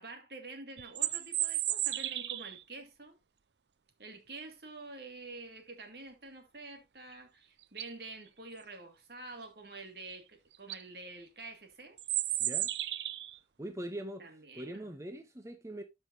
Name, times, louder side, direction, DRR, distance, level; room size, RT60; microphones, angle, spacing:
voice 1, 0.0-3.2 4.0-12.0 14.2-14.9, right 3 dB, 65° right, 2.2 m, -48 dB
sound 1, 0.8-2.6 7.1-7.2 7.6-8.1 10.1-10.2 10.5-10.8 12.0-13.4, right 13 dB, 80° right, 0.6 m, -33 dB
voice 2, 12.4-12.7 13.6-15.8, right 1 dB, 15° right, 0.8 m, -42 dB
13.0 x 5.6 x 2.7 m
head